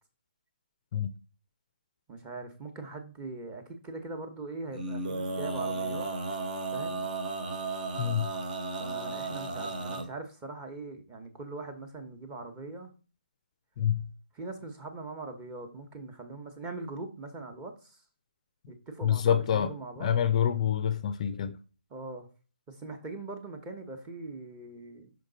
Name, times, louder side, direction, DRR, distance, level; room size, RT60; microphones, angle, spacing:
voice 1, 2.1-6.1 6.7-7.1 8.6-12.9 14.3-18.0 18.7-20.1 21.9-22.3 22.7-25.1, right 3 dB, 15° right, 1.1 m, -41 dB
Male singing, 4.7-10.0, right 3 dB, 50° right, 1.4 m, -34 dB
voice 2, 8.0-8.3 13.8-14.1 19.0-19.7 20.0-21.6, left 9 dB, 35° left, 0.5 m, -27 dB
5.7 x 5.0 x 4.0 m
figure-of-eight pair, 150°, 6 cm